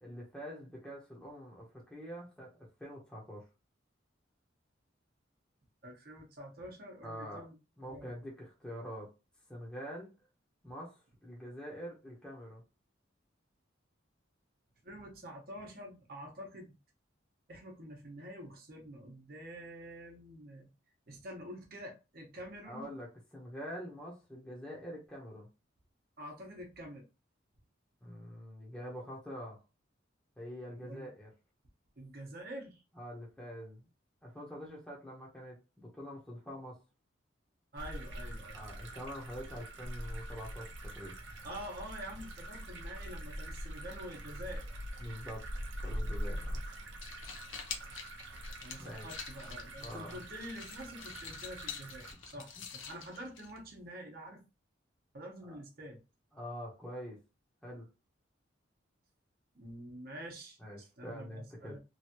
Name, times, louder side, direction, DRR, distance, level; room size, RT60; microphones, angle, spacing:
voice 1, 0.0-2.5 2.8-3.4 7.0-7.5 7.8-9.1 9.5-10.1 10.6-12.6 22.7-25.5 28.0-29.6 30.4-31.3 33.0-33.9 34.2-36.8 38.5-41.1 45.0-45.5 45.8-46.6 48.8-49.1 49.8-50.2 52.1-52.3 55.4-55.6 56.3-57.2 57.6-57.9 60.6-61.8, equal, 5° left, 0.8 m, -45 dB
voice 2, 5.8-7.5 7.8-8.1 14.8-16.7 17.5-20.7 21.1-22.9 26.2-27.0 30.8-31.1 32.0-32.8 37.7-38.6 41.4-44.7 48.6-54.4 55.1-56.0 59.5-61.8, equal, 50° right, 1.0 m, -47 dB
sound 1, 37.8-52.1, equal, 65° right, 0.7 m, -43 dB
sound 2, 47.0-53.9, left 6 dB, 85° left, 0.7 m, -47 dB
3.1 x 2.6 x 2.8 m
head